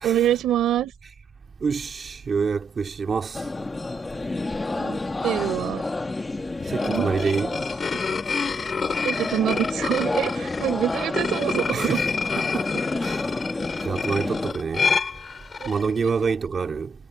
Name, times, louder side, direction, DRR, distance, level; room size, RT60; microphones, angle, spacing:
voice 1, 0.0-0.9 4.8-5.8 6.8-7.6 9.0-12.0 15.6-15.7, right 12 dB, 85° right, 3.5 m, -25 dB
voice 2, 1.6-3.4 6.7-7.5 11.7-12.0 12.4-13.3 13.8-14.9 15.7-16.9, right 5 dB, 40° right, 2.3 m, -27 dB
sound 1, 3.3-14.5, left 2 dB, 20° left, 1.3 m, -30 dB
sound 2, 6.6-15.9, left 5 dB, 35° left, 2.5 m, -28 dB
cardioid pair, 115°, 0 cm